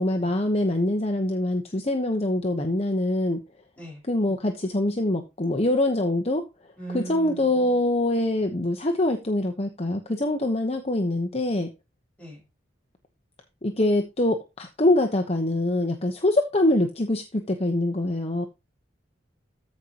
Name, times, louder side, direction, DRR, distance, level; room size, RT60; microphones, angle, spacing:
voice 1, 0.0-3.4 4.1-6.5 6.9-11.7 13.6-18.5, left 1 dB, 30° left, 1.0 m, -24 dB
voice 2, 6.8-7.5 12.2-12.4, right 2 dB, 5° left, 6.0 m, -38 dB
14.0 x 5.5 x 3.0 m
head